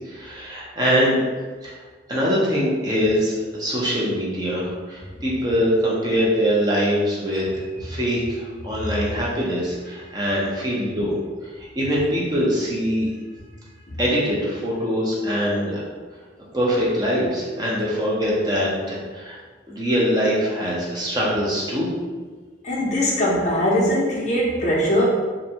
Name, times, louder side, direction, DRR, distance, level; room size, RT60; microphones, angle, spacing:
voice 1, 0.0-1.2 1.6-1.7 2.1-11.2 11.6-13.1 14.0-15.9 16.5-19.4 19.7-21.9, equal, 20° right, -5 dB, 0.5 m, -23 dB
voice 2, 22.6-25.0, equal, 40° left, -5 dB, 0.5 m, -21 dB
2.5 x 2.1 x 2.7 m, 1.4 s
head